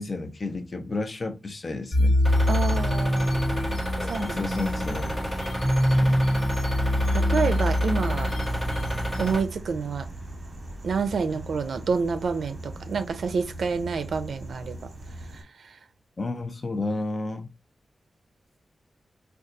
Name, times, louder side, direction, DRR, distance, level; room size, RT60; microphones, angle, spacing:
voice 1, 0.0-2.2 4.0-5.1 5.9-6.2 16.2-17.5, left 2 dB, 35° left, 0.5 m, -32 dB
sound 1, 1.9-9.3, left 1 dB, 65° left, 1.2 m, -24 dB
sound 2, 2.2-9.4, equal, 20° left, 1.4 m, -32 dB
voice 2, 2.5-3.4 4.0-4.4 6.7-6.8 7.1-8.3 9.2-10.1 10.8-14.9 15.3-15.8, right 5 dB, 85° right, 0.4 m, -28 dB
sound 3, 8.4-15.4, right 1 dB, 40° right, 1.1 m, -40 dB
3.9 x 2.3 x 2.5 m
wide cardioid pair, 165°, 0 cm